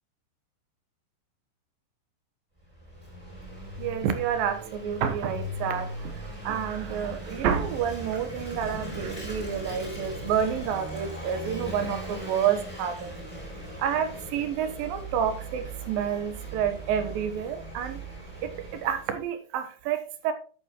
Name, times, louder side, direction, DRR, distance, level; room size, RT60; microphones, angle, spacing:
Vehicle / Engine, 2.6-19.3, right 1 dB, 10° right, 3.4 m, -39 dB
voice 1, 3.8-13.1 13.8-18.0 18.4-20.3, right 8 dB, 70° right, 2.5 m, -29 dB
12.0 x 8.1 x 3.0 m
omnidirectional pair, 4.8 m